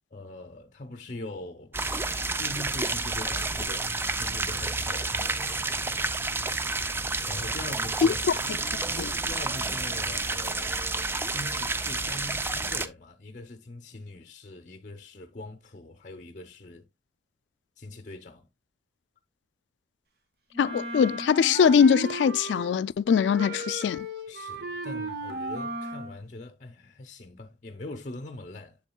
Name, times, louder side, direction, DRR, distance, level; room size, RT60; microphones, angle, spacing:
voice 1, 0.1-1.8 2.4-5.9 7.2-8.2 9.2-10.9 11.3-16.9 17.8-18.5 24.3-28.8, left 2 dB, 45° left, 0.7 m, -42 dB
sound 1, 1.7-12.9, right 3 dB, 15° right, 0.4 m, -30 dB
Wind instrument woodwind instrument, 20.5-22.8 23.0-26.2, right 1 dB, 60° right, 1.6 m, -35 dB
voice 2, 20.6-24.1, left 7 dB, 85° left, 0.3 m, -22 dB
7.8 x 7.2 x 2.2 m
head